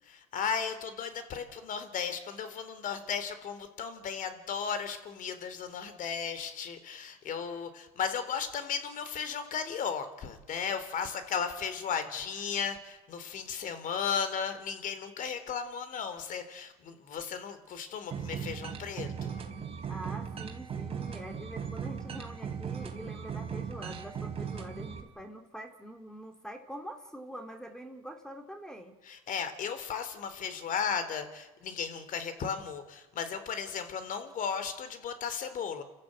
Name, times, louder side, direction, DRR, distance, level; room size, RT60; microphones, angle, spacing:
voice 1, 0.0-19.4 29.1-35.8, left 6 dB, 45° left, 10 dB, 3.7 m, -35 dB
sound 1, 18.1-25.0, right 7 dB, 30° right, 4.0 m, -38 dB
voice 2, 19.9-29.0, equal, 5° left, 5 dB, 2.9 m, -45 dB
29.5 x 13.5 x 8.9 m, 1.1 s
supercardioid pair, 100°, 19 cm